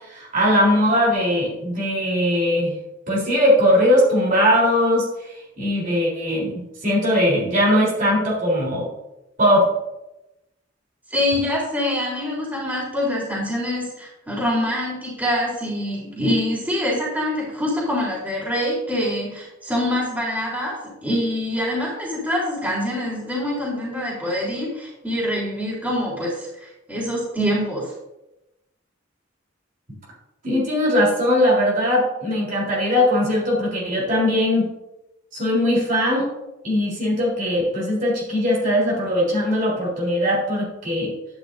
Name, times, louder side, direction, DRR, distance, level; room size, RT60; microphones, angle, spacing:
voice 1, 0.1-2.8 3.1-8.9 9.4-9.7 30.4-34.7 35.3-36.3 36.6-41.1, left 1 dB, 45° right, -4 dB, 3.7 m, -20 dB
voice 2, 11.1-27.9, left 1 dB, 10° right, -6 dB, 3.8 m, -25 dB
11.5 x 10.0 x 2.7 m, 0.93 s
head